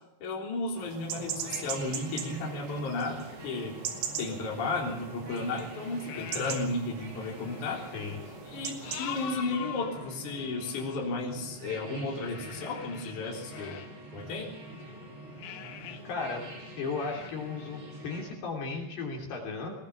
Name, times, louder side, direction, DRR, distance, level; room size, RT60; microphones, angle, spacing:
voice 1, 0.2-3.7 4.2-7.9 8.5-13.8 14.1-14.5, left 3 dB, 45° left, -1 dB, 4.7 m, -34 dB
sound 1, 0.8-9.3, right 8 dB, 90° right, 4.7 m, -41 dB
sound 2, 1.1-18.3, right 1 dB, 65° right, 7.6 m, -46 dB
sound 3, 4.7-4.8 5.6-6.9 7.1-11.1 12.1-14.9 15.3-16.0 16.4-16.5 16.9-17.3, left 9 dB, 75° left, 4.0 m, -44 dB
voice 2, 16.0-16.4 16.8-19.7, left 4 dB, 60° left, 0 dB, 5.0 m, -35 dB
20.5 x 20.0 x 7.1 m, 0.88 s
omnidirectional pair, 5.5 m